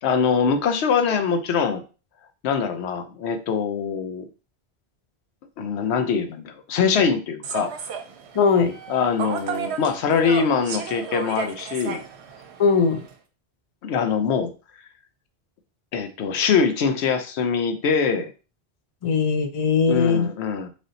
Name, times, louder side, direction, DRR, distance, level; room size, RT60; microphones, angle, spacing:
voice 1, 0.0-1.8 2.4-4.3 5.6-7.7 8.9-12.0 13.8-14.5 15.9-18.3 19.9-20.7, left 6 dB, 85° left, 8 dB, 0.9 m, -23 dB
Human voice / Subway metro underground, 7.4-13.1, right 6 dB, 80° right, 0.9 m, -33 dB
voice 2, 8.3-8.7 12.6-13.0 19.0-20.3, left 5 dB, 45° left, 7 dB, 0.4 m, -19 dB
3.3 x 2.6 x 3.9 m, 0.33 s
omnidirectional pair, 1.1 m